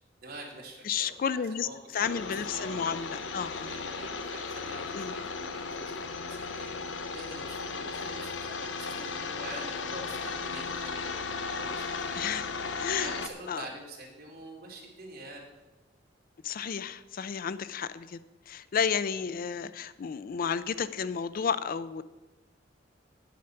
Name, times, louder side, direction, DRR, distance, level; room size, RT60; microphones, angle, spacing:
voice 1, 0.2-1.7 2.0-2.8 3.7-6.7 7.1-12.6 12.9-15.4, right 2 dB, 55° right, -2 dB, 2.8 m, -46 dB
voice 2, 0.8-1.7 1.9-3.7 4.9-5.1 12.1-12.5 12.7-13.1 13.5-13.7 16.4-18.2 18.5-22.0, left 7 dB, 50° left, 14 dB, 0.4 m, -32 dB
sound 1, 2.0-13.3, left 4 dB, 85° left, 0.8 m, -36 dB
9.2 x 8.5 x 5.7 m, 1.1 s
head